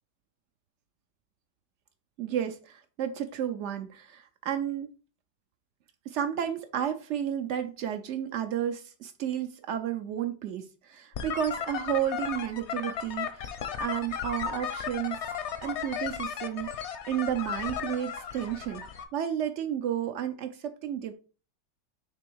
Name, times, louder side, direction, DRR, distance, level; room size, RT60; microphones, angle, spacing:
voice 1, 2.2-4.9 6.1-15.2 15.6-18.8 19.1-21.1, right 10 dB, 85° right, 0.6 m, -32 dB
sound 1, 11.1-19.0, left 8 dB, 60° left, 0.7 m, -35 dB
6.1 x 3.4 x 4.6 m
omnidirectional pair, 1.9 m